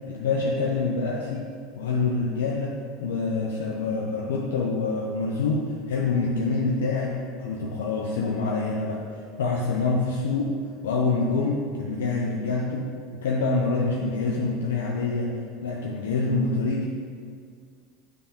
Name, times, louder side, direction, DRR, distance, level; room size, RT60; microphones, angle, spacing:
voice 1, 0.1-10.6 10.8-12.9 13.2-15.3 15.6-16.9, left 3 dB, 90° left, -2 dB, 0.6 m, -26 dB
6.8 x 3.6 x 5.2 m, 2.1 s
hypercardioid pair, 100°, 0 cm